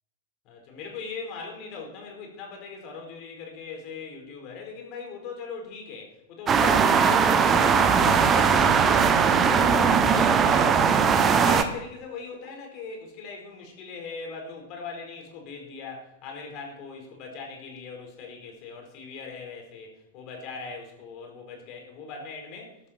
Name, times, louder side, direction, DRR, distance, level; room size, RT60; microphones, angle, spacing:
voice 1, 0.4-11.0 11.4-22.7, left 4 dB, 40° left, 2 dB, 4.7 m, -40 dB
sound 1, 6.5-11.6, right 6 dB, 25° right, 1.2 m, -19 dB
12.5 x 12.5 x 4.5 m, 0.87 s
figure-of-eight pair, 90°, 0 cm